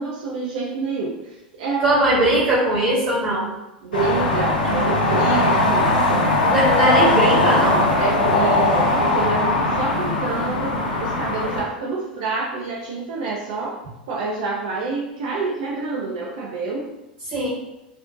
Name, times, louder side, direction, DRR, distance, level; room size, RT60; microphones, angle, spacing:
voice 1, 0.0-2.1 3.8-6.5 8.0-13.7 14.1-16.9, right 4 dB, 60° right, -4 dB, 0.4 m, -27 dB
voice 2, 1.8-3.5 6.4-7.8 17.3-17.5, right 1 dB, 35° right, -7 dB, 0.9 m, -20 dB
sound 1, 3.9-11.6, left 2 dB, 70° left, 0.5 m, -19 dB
2.4 x 2.1 x 2.5 m, 0.94 s
figure-of-eight pair, 85°, 5 cm